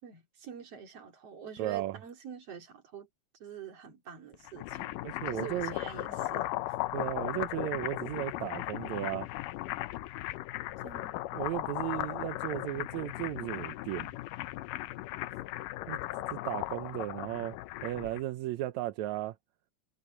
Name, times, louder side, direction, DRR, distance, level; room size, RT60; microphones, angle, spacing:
voice 1, 0.0-3.1 3.4-5.0 5.3-6.5 10.8-11.3 16.1-16.4, right 8 dB, 50° right, 3.6 m, -46 dB
voice 2, 1.6-2.0 5.0-5.7 6.9-9.3 11.3-14.1 15.9-16.0 16.3-17.6 17.8-19.4, right 15 dB, 75° right, 1.8 m, -35 dB
sound 1, 4.3-18.2, left 16 dB, 85° left, 2.3 m, -37 dB
omnidirectional pair, 3.7 m